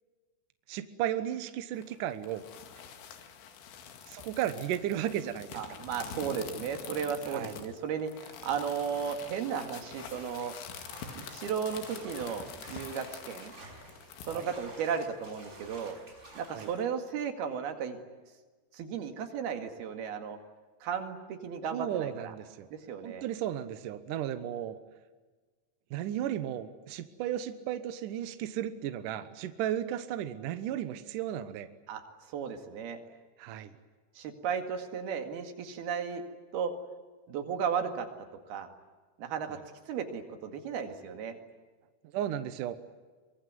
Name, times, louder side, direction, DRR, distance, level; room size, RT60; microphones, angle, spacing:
voice 1, 0.7-2.4 4.1-5.5 7.3-7.5 14.3-14.5 16.5-16.7 21.7-22.7 23.0-24.8 25.9-31.7 33.4-33.7 42.1-42.8, right 11 dB, 80° right, 10 dB, 1.9 m, -34 dB
sound 1, 1.7-14.5, left 7 dB, 85° left, 4.6 m, -46 dB
voice 2, 5.5-10.5 11.2-13.6 14.2-16.0 16.4-18.0 18.7-20.4 20.8-22.4 22.7-23.3 31.9-32.0 32.3-33.0 34.2-36.2 36.5-36.7 37.3-38.1 38.5-38.7 39.2-39.6 39.9-41.4, right 7 dB, 60° right, 6 dB, 3.7 m, -35 dB
sound 2, 10.0-16.9, right 2 dB, 15° right, 5.8 m, -50 dB
24.0 x 22.5 x 9.4 m, 1.3 s
omnidirectional pair, 5.4 m